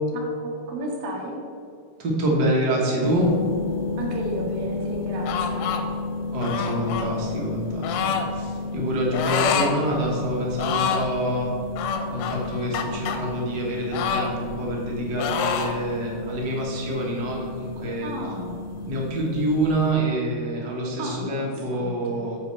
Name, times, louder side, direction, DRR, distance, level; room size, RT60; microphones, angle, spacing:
voice 1, 0.1-1.4 4.0-5.7 18.0-18.6 21.0-22.2, right 1 dB, 70° right, -2 dB, 3.0 m, -34 dB
voice 2, 2.0-3.3 6.3-11.5 12.1-18.1 18.9-22.4, right 1 dB, 50° right, -2 dB, 1.1 m, -26 dB
sound 1, 3.0-19.9, left 3 dB, 40° left, 0.9 m, -32 dB
sound 2, 5.2-5.8 6.4-7.1 7.8-8.3 9.1-9.7 10.1-10.2 10.5-11.1 11.8-13.2 13.9-14.9 15.2-15.8, left 6 dB, 85° left, 2.6 m, -26 dB
8.6 x 4.4 x 6.9 m, 2.3 s
omnidirectional pair, 4.3 m